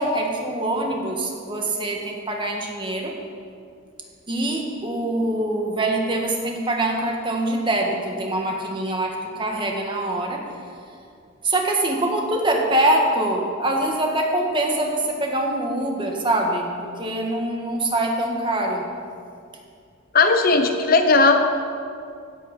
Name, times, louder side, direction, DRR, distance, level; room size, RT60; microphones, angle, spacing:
voice 1, 0.0-3.1 4.3-10.4 11.4-16.7 17.0-18.9, right 1 dB, 25° right, 1 dB, 1.8 m, -24 dB
voice 2, 20.1-21.4, left 3 dB, 50° left, 6 dB, 0.9 m, -16 dB
16.5 x 8.4 x 6.1 m, 2.3 s
head